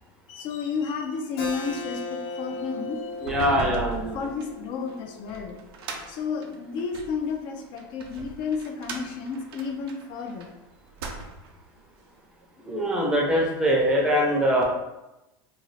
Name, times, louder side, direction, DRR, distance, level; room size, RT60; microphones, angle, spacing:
voice 1, 0.3-3.4 4.1-5.6 6.1-10.5, left 5 dB, 40° left, 4 dB, 0.4 m, -32 dB
Keyboard (musical), 1.4-6.6, left 3 dB, 70° left, 0.8 m, -37 dB
sound 1, 3.1-7.2 7.8-10.5 10.8-11.6, right 4 dB, 90° right, 0.5 m, -38 dB
voice 2, 3.2-4.2 12.7-14.6, equal, 5° right, -2 dB, 0.5 m, -23 dB
2.5 x 2.3 x 3.2 m, 0.96 s
supercardioid pair, 155°, 12 cm